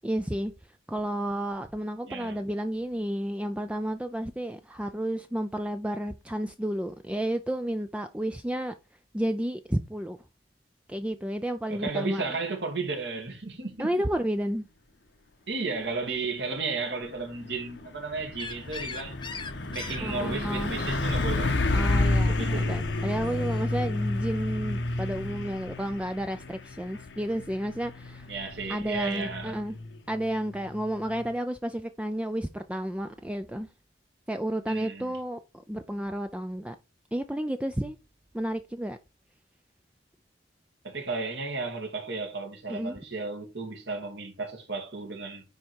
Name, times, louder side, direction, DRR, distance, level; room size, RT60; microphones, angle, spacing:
voice 1, 0.0-0.5 0.9-8.7 9.1-10.2 10.9-12.2 13.8-14.7 20.0-20.7 21.7-28.3 28.7-29.8 30.1-33.7 34.3-35.4 35.7-36.8 37.1-38.0 38.3-39.0 42.7-43.0, right 1 dB, 5° right, 0.4 m, -31 dB
voice 2, 2.1-2.4 11.7-13.9 15.5-19.2 19.7-21.6 22.3-22.7 28.3-29.6 34.7-35.1 40.8-45.4, right 3 dB, 70° right, 2.5 m, -34 dB
Truck, 17.0-31.3, left 2 dB, 80° left, 1.0 m, -30 dB
sound 1, 18.4-23.7, left 4 dB, 25° left, 1.0 m, -43 dB
9.6 x 3.6 x 4.6 m
head